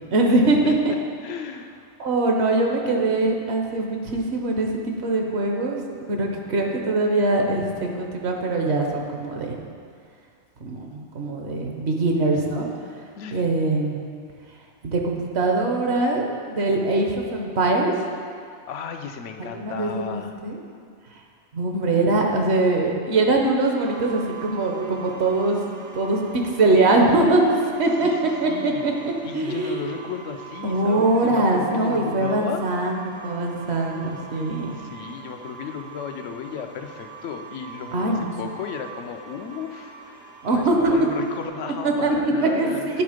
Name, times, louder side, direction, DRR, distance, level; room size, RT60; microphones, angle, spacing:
voice 1, 0.1-0.9 2.0-5.8 6.1-9.5 10.6-12.7 13.3-14.1 14.8-16.2 16.5-17.9 19.4-20.6 21.5-25.6 25.9-27.4 27.8-29.8 30.6-34.8 37.9-38.3 40.4-40.9 41.8-43.0, right 2 dB, 65° right, 1 dB, 1.1 m, -22 dB
voice 2, 1.2-1.8 13.2-13.4 18.7-20.3 28.0-28.9 29.2-32.6 34.7-43.0, left 7 dB, 85° left, 6 dB, 0.9 m, -35 dB
sound 1, 23.8-41.5, right 6 dB, 85° right, 1.4 m, -42 dB
9.8 x 3.7 x 5.0 m, 2.2 s
omnidirectional pair, 1.2 m